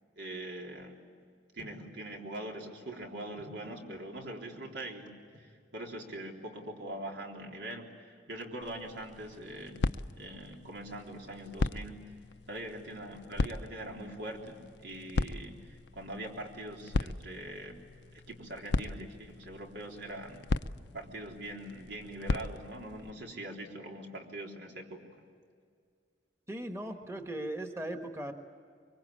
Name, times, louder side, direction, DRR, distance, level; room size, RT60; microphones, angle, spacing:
voice 1, 0.2-1.0 1.5-9.9 10.1-12.0 12.5-17.8 18.1-20.5 20.9-25.0, right 1 dB, 85° right, 0 dB, 3.8 m, -43 dB
sound 1, 8.6-23.1, left 3 dB, 75° left, 0.6 m, -38 dB
voice 2, 26.5-28.3, right 1 dB, 15° right, 5 dB, 1.4 m, -38 dB
24.0 x 24.0 x 8.7 m, 2.1 s
head